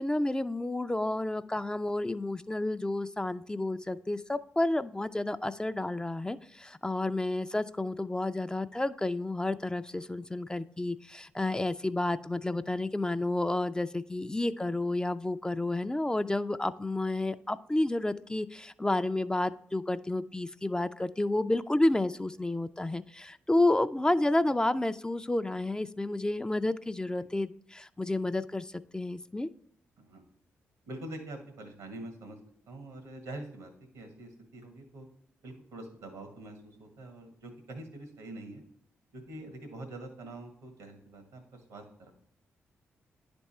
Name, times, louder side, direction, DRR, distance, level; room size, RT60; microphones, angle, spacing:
voice 1, 0.0-29.5, left 2 dB, 15° left, 11 dB, 0.4 m, -30 dB
voice 2, 30.8-32.4 32.7-35.1 35.4-38.6 39.1-42.1, right 2 dB, 90° right, 6 dB, 1.4 m, -45 dB
9.9 x 3.5 x 4.2 m, 0.67 s
supercardioid pair, 45°, 5 cm